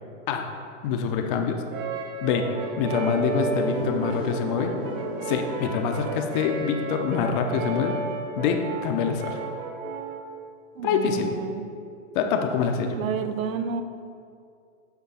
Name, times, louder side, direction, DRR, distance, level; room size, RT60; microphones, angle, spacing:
voice 1, 0.8-1.6 2.2-2.5 2.8-4.7 5.2-7.9 8.4-9.4 10.8-11.4 12.1-13.0, left 6 dB, 40° left, 5 dB, 0.7 m, -25 dB
Brass instrument, 1.7-10.3, right 4 dB, 45° right, 0.9 m, -33 dB
sound 1, 3.2-8.5, equal, ahead, 0.7 m, -36 dB
voice 2, 10.8-11.7 12.9-13.8, right 7 dB, 90° right, 9 dB, 0.7 m, -30 dB
8.3 x 3.9 x 5.4 m, 2.4 s
hypercardioid pair, 140°, 39 cm